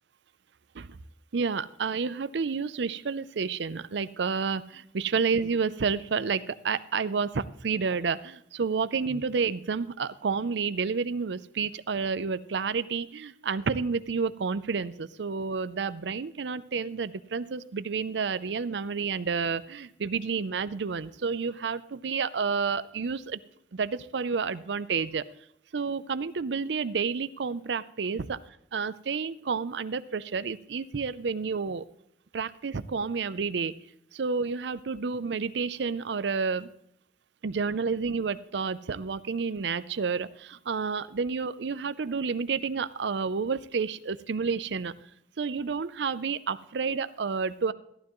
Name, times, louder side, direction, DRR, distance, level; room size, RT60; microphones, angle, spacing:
voice 1, 1.3-23.4 23.7-25.2 25.7-28.4 28.7-31.9 32.3-33.7 34.1-36.7 37.4-44.9 45.4-47.7, right 5 dB, 80° right, 16 dB, 0.5 m, -30 dB
14.0 x 12.0 x 3.1 m, 0.76 s
head